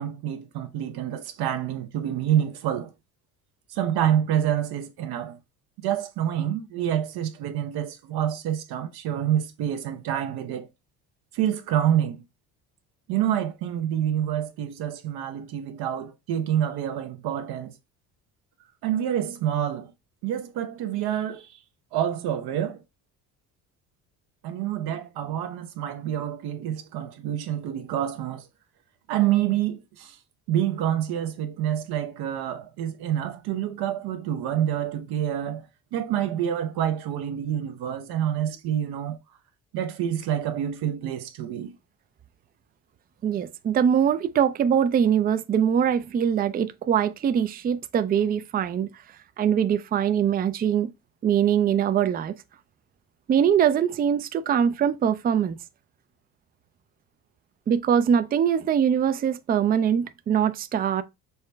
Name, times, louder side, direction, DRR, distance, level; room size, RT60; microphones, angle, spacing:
voice 1, 0.0-2.9 3.7-5.4 5.8-10.7 11.3-12.2 13.1-17.8 18.8-19.9 20.2-21.6 21.9-22.8 24.4-28.5 29.1-30.2 30.5-35.7 35.9-39.2 39.7-41.7, right 10 dB, 65° right, 0.7 m, -27 dB
voice 2, 43.2-48.9 49.4-50.9 51.2-52.4 53.3-55.6 57.7-61.0, right 8 dB, 25° right, 0.4 m, -22 dB
5.6 x 2.1 x 3.3 m
supercardioid pair, 75°, 40 cm